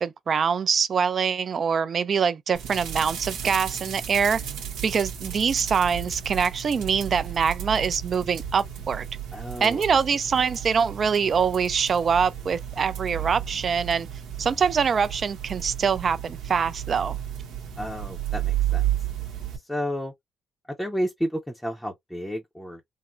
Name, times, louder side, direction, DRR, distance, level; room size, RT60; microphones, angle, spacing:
voice 1, 0.0-4.4 4.8-9.1 9.6-14.1 14.4-17.2, right 6 dB, 50° right, 0.4 m, -24 dB
sound 1, 2.5-19.6, right 10 dB, 85° right, 0.9 m, -33 dB
voice 2, 9.3-9.8 17.8-18.8 19.7-20.1 20.8-22.8, equal, 5° left, 0.6 m, -31 dB
3.5 x 2.1 x 2.5 m
cardioid pair, 90°, 0 cm